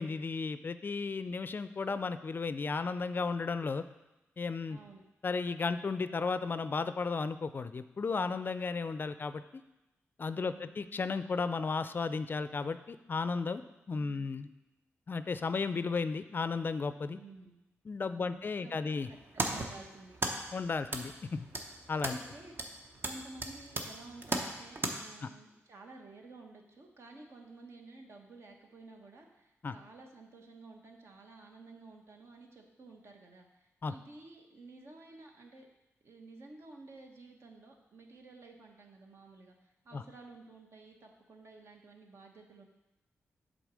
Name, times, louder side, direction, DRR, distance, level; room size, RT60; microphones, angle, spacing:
voice 1, 0.0-3.8 4.4-4.8 5.2-9.6 10.2-13.6 13.9-14.5 15.1-17.2 17.9-19.1 20.5-21.5 21.9-22.2 25.2-25.3 29.6-29.7 33.8-33.9 39.9-40.0, left 4 dB, 45° left, 12 dB, 0.4 m, -34 dB
voice 2, 4.7-5.0 10.3-10.7 14.0-14.3 17.2-17.6 18.1-20.2 22.0-22.6 23.0-35.7 36.0-42.6, right 3 dB, 60° right, 2 dB, 1.3 m, -53 dB
sound 1, 19.0-24.9, right 2 dB, 45° right, 0.9 m, -38 dB
8.1 x 3.9 x 6.3 m, 0.98 s
cardioid pair, 70°, 5 cm